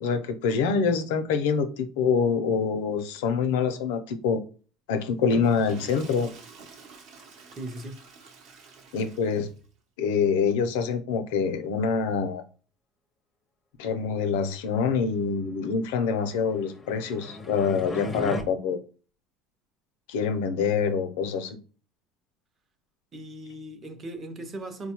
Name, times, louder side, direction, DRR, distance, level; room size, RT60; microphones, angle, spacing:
voice 1, 0.0-4.4 4.9-6.3 8.9-9.5 10.0-12.4 13.8-18.8 20.1-21.6, left 5 dB, 90° left, 0.5 m, -25 dB
Water / Toilet flush, 5.2-9.7, right 4 dB, 60° right, 0.8 m, -47 dB
voice 2, 7.5-8.0 23.1-24.9, right 1 dB, 30° right, 0.6 m, -38 dB
sound 1, 16.5-18.4, left 2 dB, 15° left, 0.5 m, -35 dB
4.1 x 2.2 x 2.9 m
cardioid pair, 135°, 0 cm